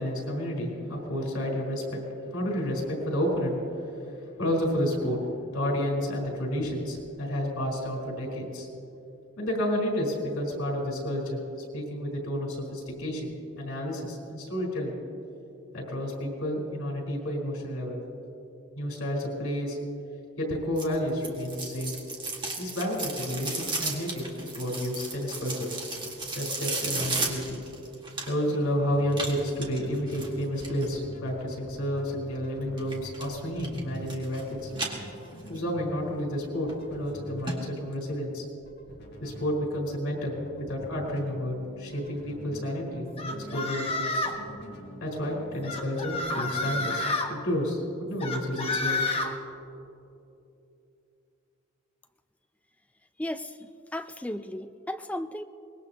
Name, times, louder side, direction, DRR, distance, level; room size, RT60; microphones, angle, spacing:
voice 1, 0.0-2.0 2.3-3.6 4.4-5.2 5.5-8.7 9.4-11.4 11.7-14.9 15.7-18.0 18.8-19.8 20.4-21.9 22.6-25.7 26.4-27.6 28.3-34.7 35.5-38.4 39.2-44.1 45.0-49.0, equal, 80° left, -2 dB, 4.2 m, -30 dB
sound 1, 20.8-28.6 29.1-30.9 32.8-33.3 33.6-34.4 34.7-35.6 36.0-36.1 36.7-36.8 37.1-37.2 37.5-37.6 37.9-38.0, right 3 dB, 20° right, 1.8 m, -34 dB
sound 2, 28.6-47.1, equal, 50° left, 2.8 m, -47 dB
sound 3, 43.2-44.4 45.6-47.3 48.2-49.3, left 2 dB, 25° left, 1.2 m, -29 dB
voice 2, 53.2-55.4, left 1 dB, 5° left, 9 dB, 0.4 m, -35 dB
24.0 x 20.0 x 2.9 m, 2.8 s
head